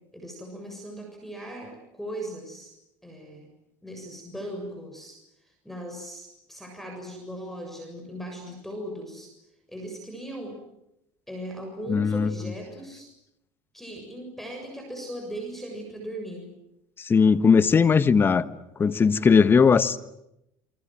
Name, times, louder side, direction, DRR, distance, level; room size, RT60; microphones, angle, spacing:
voice 1, 0.1-2.7 3.0-3.5 3.8-5.2 5.4-9.3 9.7-10.6 11.3-13.1 13.7-16.5, right 1 dB, 5° left, 3 dB, 7.2 m, -38 dB
voice 2, 11.9-12.3 17.0-18.4 18.8-20.0, left 5 dB, 30° left, 13 dB, 1.4 m, -19 dB
28.0 x 23.5 x 7.7 m, 0.85 s
supercardioid pair, 100°, 8 cm